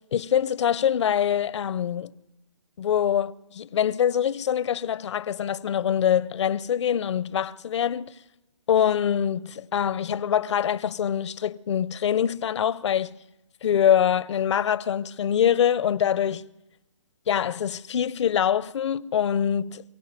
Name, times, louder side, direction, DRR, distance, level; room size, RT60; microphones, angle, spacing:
voice 1, 0.1-2.1 2.8-8.1 8.7-13.2 13.6-16.4 17.3-19.8, left 9 dB, 65° left, 0.6 m, -24 dB
23.5 x 16.5 x 6.7 m
hypercardioid pair, 145°, 16 cm